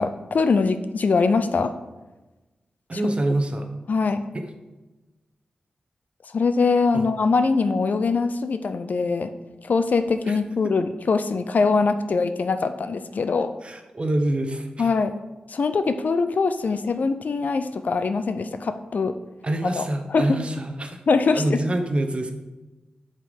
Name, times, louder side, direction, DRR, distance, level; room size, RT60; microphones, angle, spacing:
voice 1, 0.0-1.7 3.9-4.2 6.3-9.3 9.6-13.5 14.8-15.1 15.5-19.2 19.6-20.4 21.1-21.6, left 4 dB, 65° left, 9 dB, 0.5 m, -22 dB
voice 2, 2.9-3.7 4.3-4.5 6.9-7.1 10.3-10.4 10.6-10.7 13.6-14.9 19.4-21.0 21.3-22.3, right 1 dB, 40° right, 5 dB, 0.9 m, -26 dB
5.6 x 4.9 x 5.2 m, 1.1 s
cardioid pair, 55°, 3 cm